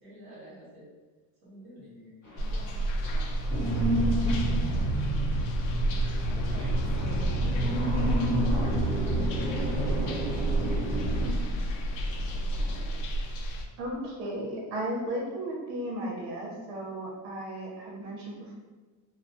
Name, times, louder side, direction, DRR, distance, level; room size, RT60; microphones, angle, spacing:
voice 1, 0.0-0.9 1.4-2.9, equal, 40° right, -8 dB, 1.1 m, -51 dB
Thunder / Rain, 2.2-13.0, left 1 dB, 15° left, 0.8 m, -45 dB
voice 2, 2.2-3.8 4.1-5.4 5.7-9.0, equal, 10° right, -10 dB, 0.4 m, -51 dB
sound 1, 2.4-13.7, right 1 dB, 85° left, 0.6 m, -30 dB
sound 2, 3.5-11.3, right 1 dB, 85° right, 0.7 m, -30 dB
voice 3, 13.8-18.5, right 1 dB, 60° right, -3 dB, 0.9 m, -35 dB
2.3 x 2.2 x 2.6 m, 1.3 s
cardioid pair, 160°, 49 cm